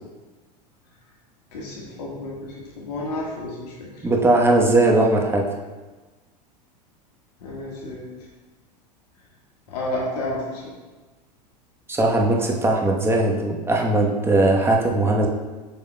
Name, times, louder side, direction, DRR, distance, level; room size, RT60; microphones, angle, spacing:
voice 1, 1.5-3.7 7.4-8.0 9.7-10.6, left 1 dB, 70° left, -4 dB, 1.5 m, -31 dB
voice 2, 4.0-5.4 11.9-15.3, right 2 dB, 10° right, 0 dB, 1.0 m, -19 dB
7.8 x 5.6 x 2.2 m, 1.3 s
hypercardioid pair, 90°, 21 cm